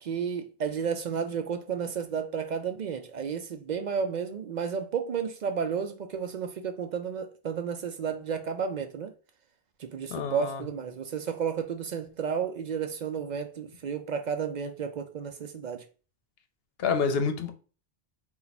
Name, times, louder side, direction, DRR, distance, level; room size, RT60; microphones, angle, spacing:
voice 1, 0.0-9.1 9.8-15.8, right 6 dB, 55° right, 0.5 m, -32 dB
voice 2, 10.1-10.6 16.8-17.5, left 5 dB, 70° left, 0.9 m, -28 dB
4.3 x 2.4 x 4.0 m
omnidirectional pair, 1.1 m